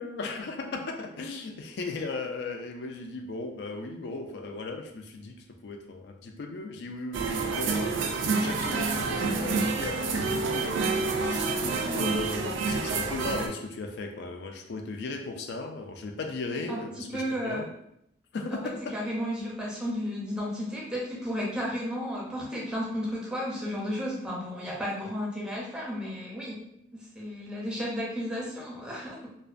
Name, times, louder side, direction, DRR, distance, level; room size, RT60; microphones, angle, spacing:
voice 1, 0.0-17.7 18.3-19.0, left 3 dB, 65° left, 4 dB, 0.3 m, -36 dB
sound 1, 7.1-13.5, right 4 dB, 90° right, 0.3 m, -28 dB
voice 2, 16.5-16.8 17.1-17.6 18.5-26.6 26.9-29.4, equal, 5° right, -4 dB, 0.5 m, -33 dB
2.4 x 2.1 x 2.4 m, 0.76 s
head